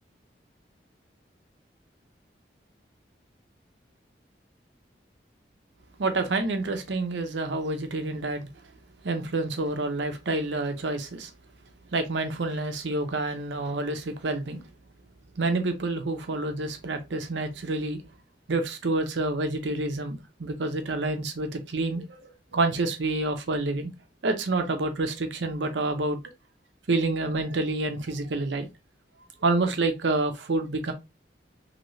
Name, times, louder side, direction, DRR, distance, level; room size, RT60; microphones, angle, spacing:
voice 1, 6.0-8.4 9.0-11.3 11.9-14.7 15.4-18.0 18.5-23.9 24.2-26.2 26.9-28.7 29.4-30.9, right 2 dB, 85° right, 0.7 m, -28 dB
3.1 x 2.9 x 2.6 m
head